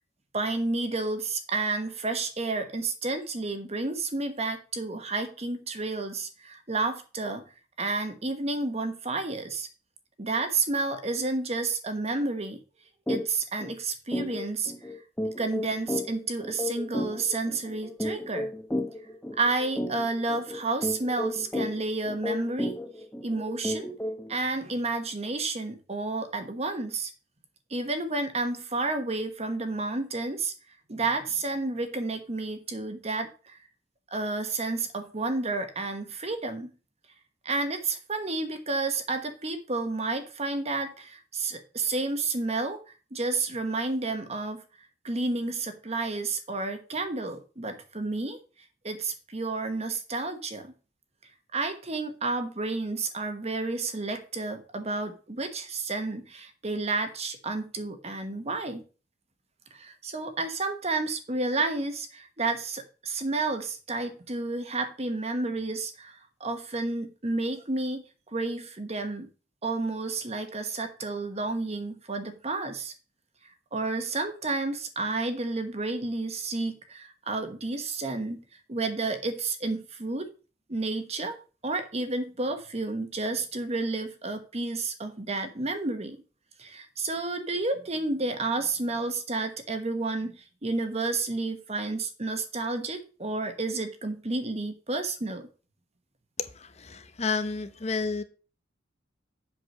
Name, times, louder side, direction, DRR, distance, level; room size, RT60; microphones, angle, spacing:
voice 1, 0.3-7.4 7.8-9.7 10.2-12.6 13.1-14.7 15.4-18.5 19.4-22.7 23.2-23.9 24.3-27.1 27.7-30.5 30.9-33.6 34.1-36.7 37.4-44.6 45.0-48.4 48.8-50.7 51.5-58.8 59.7-68.0 68.3-69.3 69.6-72.9 73.7-80.3 80.7-81.4 81.6-86.2 86.6-95.5, right 3 dB, 35° right, 1.2 m, -31 dB
sound 1, 13.1-13.2 13.6-13.7 14.1-24.3, left 1 dB, 10° left, 0.9 m, -33 dB
voice 2, 96.4-98.2, left 4 dB, 35° left, 1.0 m, -31 dB
7.9 x 4.8 x 6.5 m
head